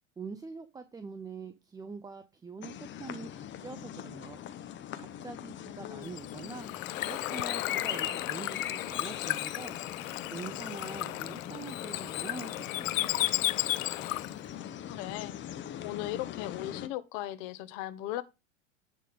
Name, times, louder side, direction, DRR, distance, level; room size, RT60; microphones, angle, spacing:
voice 1, 0.2-4.4 5.0-6.7 7.0-9.8 10.3-13.3, right 4 dB, 10° right, 0.5 m, -44 dB
sound 1, 2.6-16.9, left 10 dB, 30° left, 0.8 m, -41 dB
voice 2, 5.6-6.1 14.5-15.3 15.8-18.2, left 14 dB, 50° left, 1.1 m, -38 dB
Bird / Water, 6.0-14.5, left 16 dB, 75° left, 0.6 m, -34 dB
10.0 x 3.8 x 5.1 m
hypercardioid pair, 105°, 40 cm